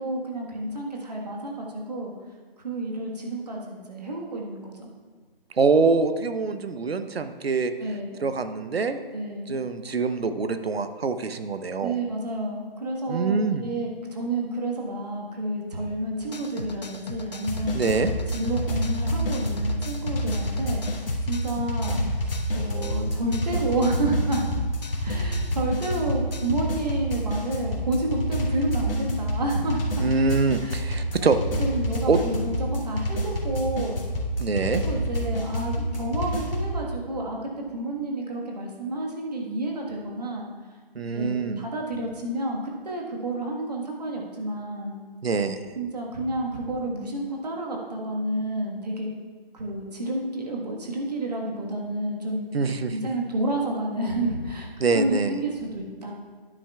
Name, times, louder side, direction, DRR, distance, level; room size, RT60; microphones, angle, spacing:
voice 1, 0.0-2.1 2.6-4.9 7.8-8.2 9.1-9.6 11.8-17.8 18.3-24.5 25.0-30.0 30.6-30.7 31.6-34.0 34.7-37.4 37.7-40.5 41.1-44.9 45.7-49.1 49.5-52.5 52.9-54.7 54.9-56.1, right 1 dB, 45° right, -1 dB, 1.5 m, -30 dB
voice 2, 5.6-7.7 8.2-9.0 9.5-12.0 13.1-13.7 17.7-18.1 30.0-31.4 32.1-32.2 34.4-34.8 40.9-41.6 45.2-45.6 52.5-52.9 54.8-55.4, right 4 dB, 90° right, 10 dB, 0.8 m, -24 dB
sound 1, 16.2-26.6, left 3 dB, 45° left, 0.5 m, -39 dB
sound 2, 17.5-36.7, equal, 65° left, 1.8 m, -28 dB
11.5 x 9.8 x 2.4 m, 1.5 s
hypercardioid pair, 170°, 30 cm